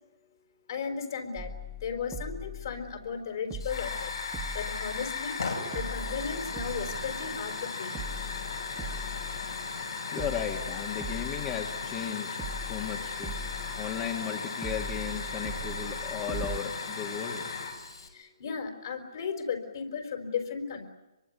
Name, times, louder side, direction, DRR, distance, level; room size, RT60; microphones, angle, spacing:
voice 1, 0.7-1.5 1.8-4.1 4.5-5.3 5.7-7.9 18.1-20.9, left 6 dB, 55° left, 5 dB, 4.6 m, -35 dB
sound 1, 1.4-3.2 3.5-5.4 5.7-7.6 7.9-9.9 10.2-12.1 12.4-14.3 14.6-16.6, right 1 dB, 10° right, 1.8 m, -40 dB
Hiss / Fire, 3.6-18.1, left 4 dB, 75° left, 6.3 m, -36 dB
voice 2, 10.1-17.5, left 8 dB, 25° left, 3 dB, 1.9 m, -36 dB
25.5 x 23.5 x 9.5 m, 1.0 s
figure-of-eight pair, 140°, 3 cm